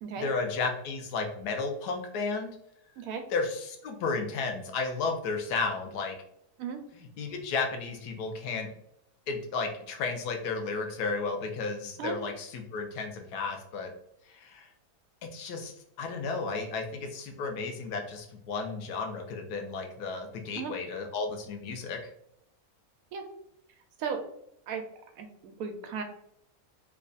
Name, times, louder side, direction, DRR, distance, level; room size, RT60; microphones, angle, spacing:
voice 1, 0.2-2.5 3.3-6.2 7.2-8.7 9.3-13.9 14.3-14.7 15.3-15.7 16.0-22.0, left 4 dB, 90° left, 4 dB, 1.2 m, -33 dB
voice 2, 25.2-26.0, right 6 dB, 70° right, 5 dB, 0.9 m, -35 dB
3.2 x 2.3 x 3.8 m, 0.74 s
omnidirectional pair, 1.7 m